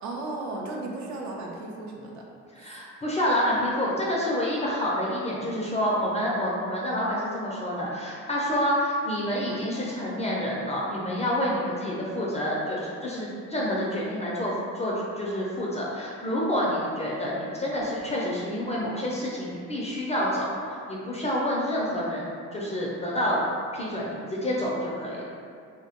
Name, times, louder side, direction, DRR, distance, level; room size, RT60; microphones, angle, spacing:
voice 1, 0.0-2.2 2.6-2.7, right 2 dB, 70° right, -2 dB, 0.5 m, -35 dB
voice 2, 2.5-23.4 23.7-25.2, equal, 20° left, -5 dB, 0.3 m, -28 dB
2.1 x 2.0 x 2.8 m, 2.2 s
cardioid pair, 90°, 30 cm